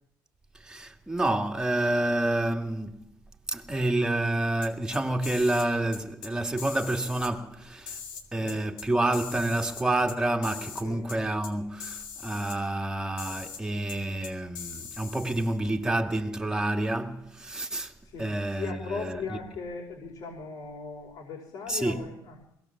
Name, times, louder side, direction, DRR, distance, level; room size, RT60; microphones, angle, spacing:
voice 1, 0.5-3.0 3.5-8.0 8.3-17.9 18.2-19.2 21.7-22.1, right 1 dB, 10° right, 2.4 m, -28 dB
sound 1, 4.6-5.7 5.9-6.3 6.6-7.3 7.9-8.9 9.1-10.2 10.4-10.8 11.1-11.2 11.4-11.5 11.8-12.6 13.2-13.6 13.9-14.0 14.2-15.6, left 6 dB, 80° left, 3.8 m, -41 dB
voice 2, 18.0-22.4, left 5 dB, 65° left, 5.2 m, -38 dB
21.5 x 18.5 x 7.4 m
cardioid pair, 100°, 8 cm